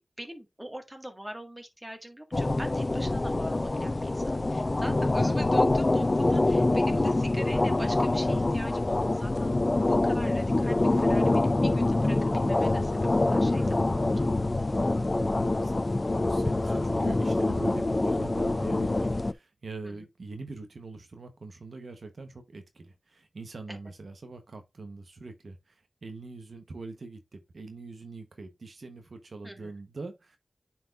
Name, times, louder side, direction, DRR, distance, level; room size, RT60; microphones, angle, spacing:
voice 1, 0.2-9.5 9.8-12.9 13.2-14.2 19.8-20.1 23.7-23.8 29.4-29.7, right 1 dB, 15° right, 1.8 m, -42 dB
sound 1, 2.3-19.3, left 2 dB, 40° left, 0.4 m, -25 dB
voice 2, 15.6-30.4, right 3 dB, 75° right, 1.0 m, -43 dB
9.5 x 4.5 x 2.5 m
wide cardioid pair, 60°, 0 cm